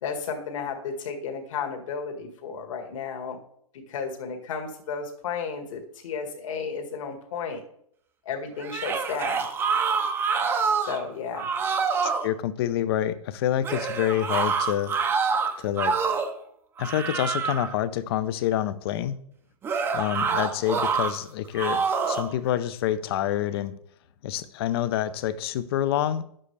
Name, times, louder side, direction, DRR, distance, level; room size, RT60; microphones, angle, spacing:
voice 1, 0.0-3.4 3.9-7.6 8.3-9.5 10.9-11.5, left 6 dB, 60° left, 1.9 m, -33 dB
sound 1, 8.6-11.0 11.3-12.3 13.6-16.4 16.8-17.7 19.6-21.1 21.6-22.3, right 5 dB, 10° right, 0.7 m, -26 dB
voice 2, 12.0-14.9 15.6-16.0 16.8-19.2 19.9-23.8 24.2-26.2, left 11 dB, 40° left, 0.6 m, -27 dB
10.5 x 7.6 x 3.4 m
hypercardioid pair, 150°, 19 cm